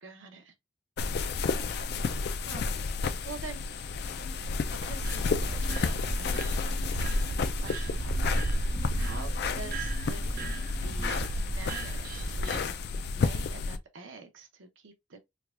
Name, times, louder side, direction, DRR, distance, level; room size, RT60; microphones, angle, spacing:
voice 1, 0.0-0.5 2.5-2.7 3.0-3.7 4.7-7.1 7.6-12.7 13.1-15.2, right 3 dB, 75° right, 0.8 m, -47 dB
sound 1, 1.0-13.8, left 4 dB, 50° left, 0.3 m, -32 dB
sound 2, 4.0-11.2, equal, 5° left, 0.6 m, -50 dB
sound 3, 4.8-12.6, right 1 dB, 45° right, 0.4 m, -33 dB
4.6 x 2.2 x 2.4 m
head